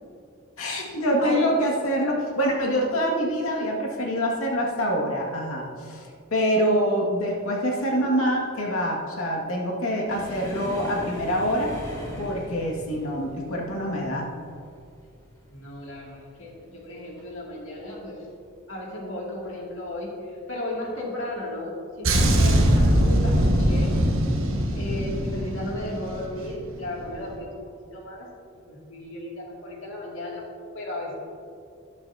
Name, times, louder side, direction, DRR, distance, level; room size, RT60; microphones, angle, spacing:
voice 1, 0.6-11.7 12.2-14.3, equal, 85° left, -2 dB, 2.2 m, -25 dB
voice 2, 1.2-1.5 15.4-18.2 18.7-23.9 24.7-27.5 27.9-28.3 28.7-30.4 30.7-31.1, left 1 dB, 65° left, -3 dB, 2.6 m, -34 dB
sound 1, 10.1-17.3 17.6-18.0 18.3-18.5 19.3-19.9 20.9-21.0 22.4-22.6, equal, 15° left, 2.3 m, -41 dB
sound 2, 22.0-26.6 26.9-27.2, right 1 dB, 75° right, 1.3 m, -21 dB
13.0 x 11.5 x 2.8 m, 2.4 s
head